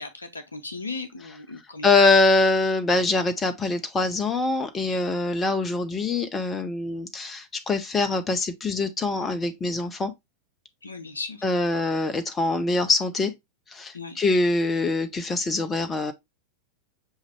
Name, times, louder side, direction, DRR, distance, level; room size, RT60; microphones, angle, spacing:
voice 1, 0.0-1.9 10.8-11.4 13.9-14.2, left 3 dB, 75° left, 0.7 m, -36 dB
voice 2, 1.8-10.1 11.4-13.3 13.7-16.1, left 3 dB, 20° left, 0.5 m, -23 dB
6.3 x 2.5 x 3.0 m
figure-of-eight pair, 90°, 0 cm